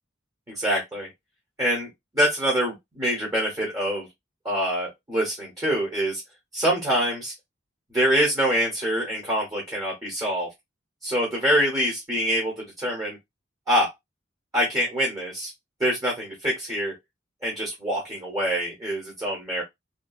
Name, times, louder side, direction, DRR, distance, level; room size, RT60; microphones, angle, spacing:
voice 1, 0.5-1.1 1.6-1.9 2.1-4.1 4.4-6.2 6.5-7.3 7.9-10.5 11.0-13.2 13.7-13.9 14.5-15.5 15.8-16.9 17.4-19.6, equal, 20° right, 1.0 m, -25 dB
2.8 x 2.2 x 2.3 m
head